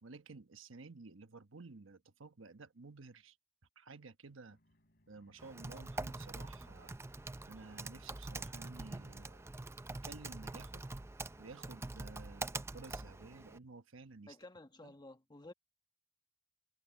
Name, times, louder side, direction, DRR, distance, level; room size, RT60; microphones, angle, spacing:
voice 1, 0.0-3.4 3.8-4.6 5.1-7.0 7.5-9.5 9.9-10.8 11.4-14.4 14.8-14.9, right 3 dB, 90° right, 1.2 m, -53 dB
sound 1, 4.5-9.5, left 1 dB, 55° left, 3.3 m, -74 dB
Typing, 5.4-13.6, right 2 dB, 15° right, 0.5 m, -45 dB
voice 2, 14.3-15.5, left 2 dB, 20° left, 1.4 m, -53 dB
head